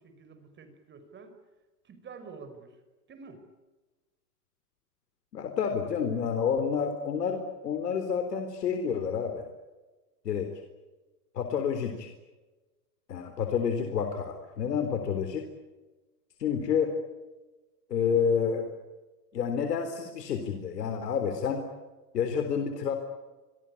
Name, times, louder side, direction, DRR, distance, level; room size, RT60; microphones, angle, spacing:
voice 1, 0.0-1.3 1.8-2.8 3.1-3.4, right 5 dB, 25° right, 8 dB, 5.3 m, -48 dB
voice 2, 5.3-9.5 10.2-10.5 11.3-12.1 13.1-15.5 16.4-16.9 17.9-18.7 19.3-21.6 22.1-22.9, left 7 dB, 85° left, 6 dB, 4.0 m, -29 dB
26.5 x 23.5 x 8.6 m, 1.2 s
hypercardioid pair, 130°, 47 cm